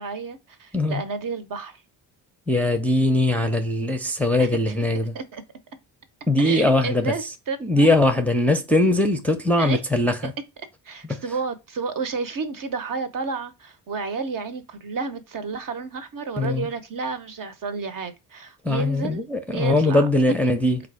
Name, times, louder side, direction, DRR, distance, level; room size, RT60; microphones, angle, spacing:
voice 1, 0.0-1.8 4.4-4.6 5.1-5.4 6.4-7.9 9.6-9.8 10.2-10.3 10.8-19.3 19.5-20.1 20.4-20.5, right 4 dB, 50° right, 0.9 m, -31 dB
voice 2, 2.5-5.1 6.3-7.1 7.6-10.3 11.1-11.2 16.4-16.7 18.6-20.8, left 2 dB, 5° left, 0.5 m, -21 dB
4.1 x 2.5 x 4.7 m
cardioid pair, 110°, 42 cm